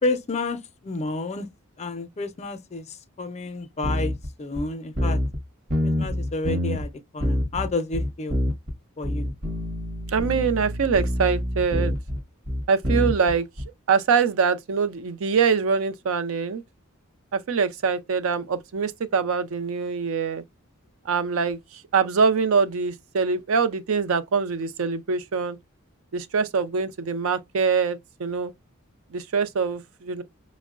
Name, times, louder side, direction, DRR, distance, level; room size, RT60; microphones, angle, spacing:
voice 1, 0.0-1.5 1.8-2.8 3.2-5.2 5.8-8.4 9.0-9.3, left 3 dB, 30° left, 0.4 m, -30 dB
sound 1, 3.8-4.3 4.6-4.7 5.0-5.4 5.7-6.9 7.2-8.7 9.0-13.6, left 1 dB, 45° right, 0.8 m, -26 dB
voice 2, 10.1-11.9 12.7-13.4 13.9-16.6 17.3-20.4 21.1-21.6 21.9-25.6 26.1-28.5 29.1-30.2, right 5 dB, 75° right, 0.5 m, -24 dB
5.2 x 2.0 x 2.4 m
head